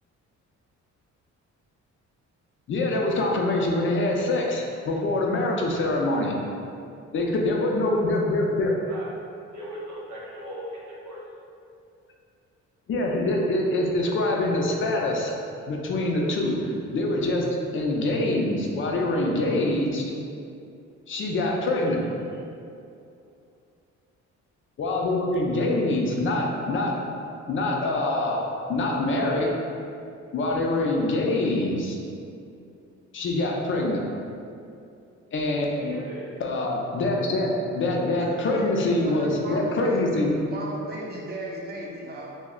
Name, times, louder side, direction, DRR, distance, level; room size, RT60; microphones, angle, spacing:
voice 1, 2.7-6.4 7.1-8.7 12.9-15.3 15.7-17.5 17.7-20.1 21.1-22.0 24.8-27.0 27.5-29.5 30.3-32.0 33.1-34.0 35.3-36.0 36.4-40.4, left 2 dB, 45° left, -1 dB, 0.4 m, -25 dB
voice 2, 9.5-11.2 35.8-36.3, equal, 85° right, -6 dB, 0.8 m, -38 dB
voice 3, 38.2-40.0 40.5-42.3, right 1 dB, 35° right, -3 dB, 0.6 m, -36 dB
2.2 x 2.1 x 3.6 m, 2.5 s
cardioid pair, 90°, 30 cm